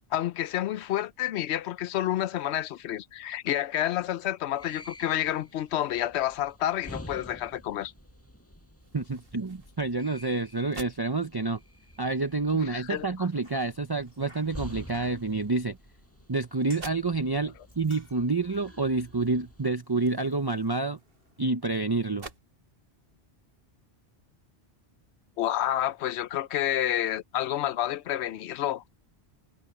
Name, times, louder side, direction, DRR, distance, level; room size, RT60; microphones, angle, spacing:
voice 1, 0.1-7.9 12.7-13.0 25.4-29.0, left 12 dB, 85° left, 0.9 m, -29 dB
sound 1, 4.5-19.6, equal, 10° left, 6.4 m, -49 dB
sound 2, 8.8-22.4, right 3 dB, 60° right, 2.0 m, -53 dB
voice 2, 8.9-11.6 12.0-15.8 16.3-21.0 21.4-22.3, right 3 dB, 25° right, 0.8 m, -28 dB
Bicycle, 13.2-21.5, left 1 dB, 60° left, 8.3 m, -59 dB
omnidirectional pair, 1.1 m